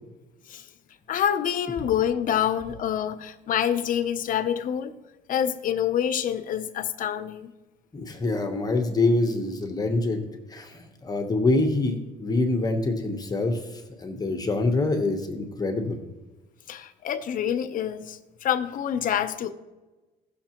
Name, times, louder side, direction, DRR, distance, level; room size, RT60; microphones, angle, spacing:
voice 1, 1.1-4.9 5.3-7.5 16.7-19.5, left 9 dB, 55° left, 0.7 m, -27 dB
voice 2, 7.9-16.0, left 2 dB, 25° left, 1.0 m, -25 dB
16.0 x 6.5 x 3.0 m
cardioid pair, 110°, 17 cm